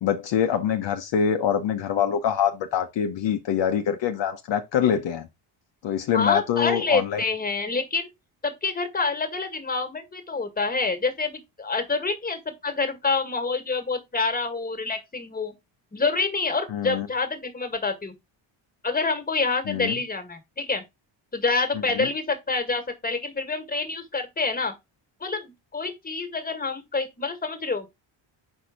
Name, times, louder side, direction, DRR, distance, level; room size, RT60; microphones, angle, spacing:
voice 1, 0.0-5.3 5.8-7.2 16.7-17.1 19.7-19.9 21.9-22.1, left 8 dB, 65° left, 0.9 m, -24 dB
voice 2, 6.1-8.1 8.4-15.5 15.9-18.1 18.8-20.8 21.3-24.7 25.2-27.9, left 4 dB, 20° left, 1.8 m, -27 dB
5.7 x 4.4 x 5.0 m
cardioid pair, 100°, 47 cm